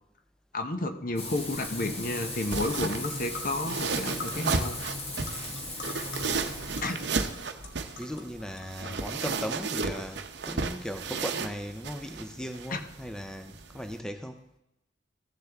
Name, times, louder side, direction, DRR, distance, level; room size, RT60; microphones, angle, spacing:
voice 1, 0.5-4.8 6.8-7.0 8.8-9.0 12.7-12.8, left 2 dB, 50° left, 7 dB, 0.9 m, -32 dB
Frying (food), 1.2-7.5, left 2 dB, 35° left, 1.5 m, -38 dB
sound 1, 1.4-14.0, right 4 dB, 65° right, 0.7 m, -34 dB
sound 2, 2.4-2.5 2.7-9.2, left 3 dB, 90° left, 1.4 m, -45 dB
voice 2, 8.0-14.4, equal, 5° left, 6 dB, 0.4 m, -37 dB
15.0 x 6.7 x 3.5 m, 0.86 s
head